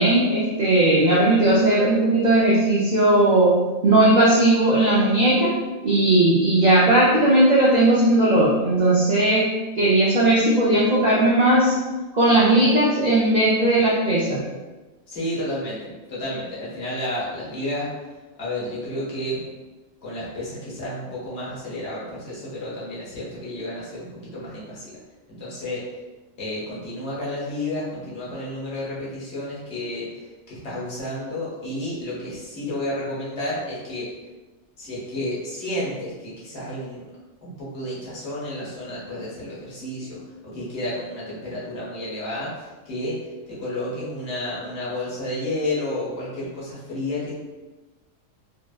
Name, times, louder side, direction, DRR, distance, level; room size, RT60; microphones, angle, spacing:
voice 1, 0.0-3.6 3.8-5.6 5.8-9.5 9.8-11.7 12.1-14.4, right 1 dB, 70° right, -7 dB, 0.4 m, -17 dB
voice 2, 15.1-17.9 18.4-19.4 20.0-25.0 25.4-25.8 26.4-30.1 30.5-34.1 34.8-37.0 37.4-42.5 42.9-43.1 43.5-47.3, left 1 dB, 60° left, -7 dB, 1.1 m, -31 dB
2.7 x 2.0 x 2.3 m, 1.2 s
omnidirectional pair, 1.4 m